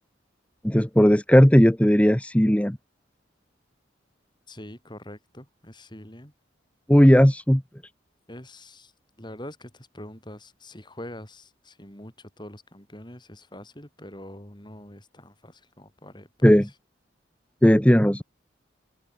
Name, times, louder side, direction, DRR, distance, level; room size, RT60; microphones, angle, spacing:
voice 1, 0.6-2.8 6.9-7.6 16.4-16.7 17.6-18.2, equal, 5° left, 1.0 m, -16 dB
voice 2, 4.5-6.3 8.3-8.9 9.2-16.6, left 1 dB, 25° left, 6.6 m, -44 dB
open air
head